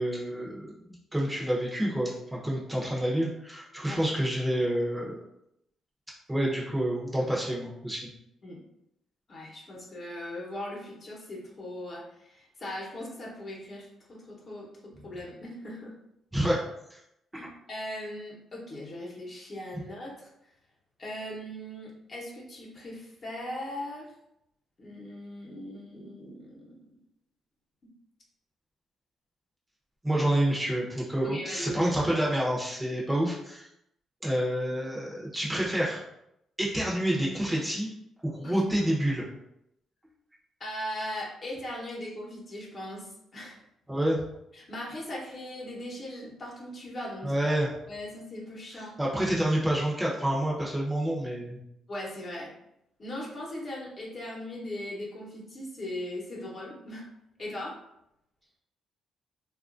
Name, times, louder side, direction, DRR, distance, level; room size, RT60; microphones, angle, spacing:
voice 1, 0.0-5.2 6.3-8.1 16.3-16.6 30.0-33.7 34.2-36.0 36.6-37.9 38.2-39.2 43.9-44.2 47.2-47.7 49.0-51.6, right 1 dB, 10° right, -4 dB, 0.8 m, -28 dB
voice 2, 9.3-15.9 17.3-20.3 21.0-24.1 24.8-26.8 30.1-30.3 31.2-31.9 38.4-38.6 40.6-43.6 44.5-47.3 47.9-49.0 51.9-52.5 53.0-57.1 57.4-57.7, left 1 dB, 40° left, -3 dB, 1.0 m, -39 dB
3.0 x 2.4 x 2.5 m, 0.80 s
cardioid pair, 90°, 0 cm